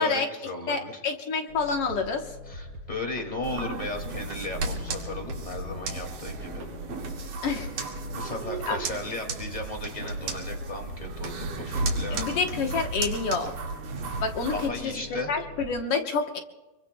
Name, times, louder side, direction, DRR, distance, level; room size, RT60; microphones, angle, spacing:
voice 1, 0.0-1.0 2.5-6.7 8.2-12.4 14.5-15.3, left 2 dB, 15° left, 3 dB, 1.8 m, -36 dB
voice 2, 0.7-2.4 7.4-7.9 8.7-8.8 12.1-13.6 14.2-14.9 15.3-16.4, left 4 dB, 60° left, 3 dB, 1.8 m, -28 dB
sound 1, 1.5-15.8, equal, 40° right, 3.7 m, -43 dB
sound 2, 3.4-14.7, right 3 dB, 85° right, 3.6 m, -34 dB
26.5 x 23.5 x 2.3 m, 1.2 s
omnidirectional pair, 3.6 m